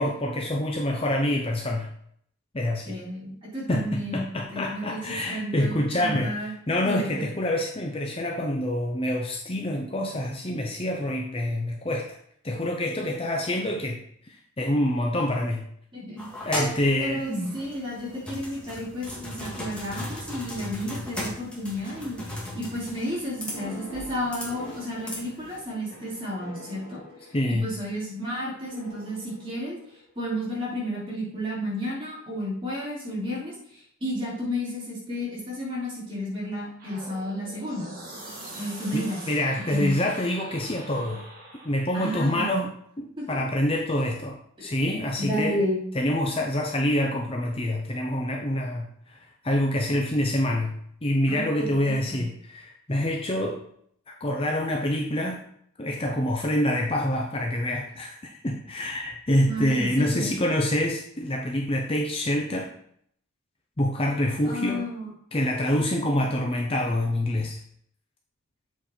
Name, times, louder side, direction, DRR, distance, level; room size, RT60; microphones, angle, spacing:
voice 1, 0.0-1.9 2.5-3.0 3.7-12.2 12.4-14.0 14.6-15.7 16.4-17.2 27.3-27.7 38.9-41.2 41.6-42.7 43.0-45.6 45.9-49.2 49.4-53.6 54.1-55.4 55.8-62.7 63.8-64.9 65.3-67.6, left 1 dB, 25° left, 0 dB, 0.6 m, -26 dB
voice 2, 2.8-6.5 6.8-7.2 15.9-16.3 17.0-22.2 22.5-27.0 27.6-29.8 30.2-37.9 38.5-39.2 39.7-40.0 41.9-42.6 43.2-43.4 44.6-44.7 45.2-45.8 51.3-52.2 59.4-60.3 64.5-65.1, equal, 25° right, -6 dB, 2.8 m, -32 dB
sound 1, 16.2-25.6, left 1 dB, 5° left, 1.8 m, -37 dB
sound 2, 23.4-28.0 28.7-30.3, equal, 50° left, 2.8 m, -45 dB
sound 3, 36.8-41.9, right 1 dB, 40° right, 2.1 m, -43 dB
7.9 x 4.5 x 4.3 m, 0.66 s
head